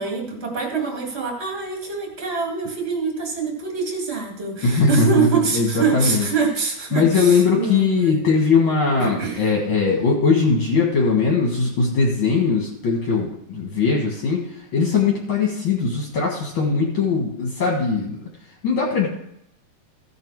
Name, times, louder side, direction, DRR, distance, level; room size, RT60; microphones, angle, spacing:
voice 1, 0.0-8.2 9.0-9.4 10.0-10.1, right 5 dB, 25° right, -1 dB, 1.3 m, -25 dB
voice 2, 4.6-5.3 5.5-6.3 6.9-18.2 18.6-19.1, left 4 dB, 50° left, -1 dB, 1.7 m, -20 dB
15.0 x 5.8 x 4.8 m, 0.74 s
omnidirectional pair, 4.5 m